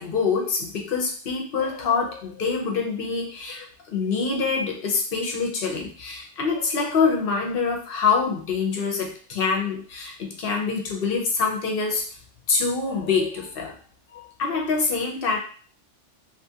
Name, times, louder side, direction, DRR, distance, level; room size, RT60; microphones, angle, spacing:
voice 1, 0.0-12.0 12.5-13.7 14.1-15.4, left 5 dB, 55° left, 1 dB, 0.8 m, -25 dB
2.8 x 2.4 x 2.7 m, 0.41 s
omnidirectional pair, 1.2 m